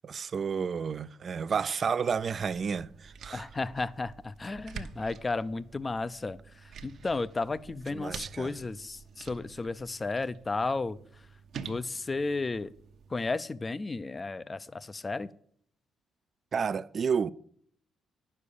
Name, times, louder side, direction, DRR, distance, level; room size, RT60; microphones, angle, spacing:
voice 1, 0.0-3.5 7.9-8.6 16.5-17.3, right 6 dB, 45° right, 0.4 m, -31 dB
sound 1, 2.1-13.4, right 6 dB, 70° right, 0.9 m, -48 dB
voice 2, 3.3-6.4 6.8-11.0 11.6-12.7 13.1-15.3, left 3 dB, 25° left, 0.5 m, -33 dB
9.8 x 6.6 x 6.9 m
cardioid pair, 90°, 0 cm